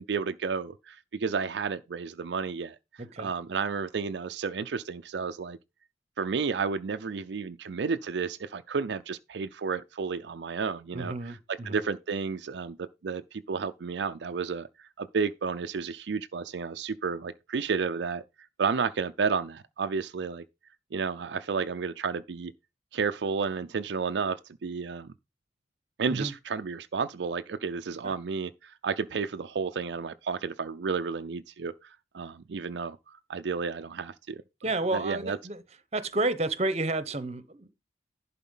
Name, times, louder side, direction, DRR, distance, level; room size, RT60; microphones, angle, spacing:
voice 1, 0.0-2.8 3.2-5.6 6.2-18.2 18.6-20.4 20.9-22.5 22.9-25.1 26.0-34.4 34.9-35.4, right 5 dB, 75° right, 0.5 m, -32 dB
voice 2, 3.0-3.3 10.9-11.8 26.1-26.3 28.0-28.1 34.6-35.6 35.9-37.7, right 2 dB, 35° right, 0.9 m, -31 dB
11.0 x 4.2 x 5.6 m
head